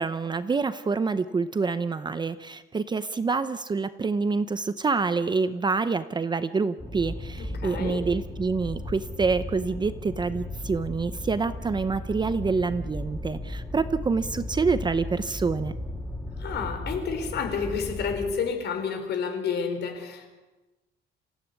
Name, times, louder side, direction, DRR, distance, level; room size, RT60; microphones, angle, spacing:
voice 1, 0.0-15.7, right 4 dB, 20° right, 12 dB, 0.7 m, -27 dB
sound 1, 6.8-18.3, left 1 dB, 5° left, 3.0 m, -36 dB
voice 2, 7.4-8.1 16.4-20.3, left 6 dB, 55° left, 6 dB, 4.4 m, -30 dB
27.0 x 16.0 x 9.6 m, 1.1 s
cardioid pair, 165°, 20 cm